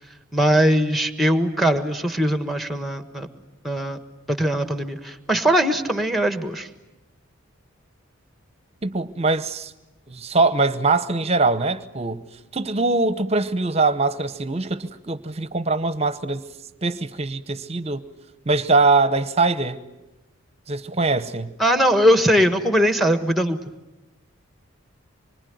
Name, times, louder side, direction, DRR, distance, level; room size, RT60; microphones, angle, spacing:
voice 1, 0.3-3.3 3.6-4.0 4.3-6.7 21.6-23.6, equal, ahead, 1.5 m, -20 dB
voice 2, 8.8-9.7 10.1-12.2 12.5-16.4 16.8-18.0 18.5-19.8 20.7-21.5, right 3 dB, 30° right, 1.0 m, -22 dB
26.0 x 24.5 x 9.4 m
head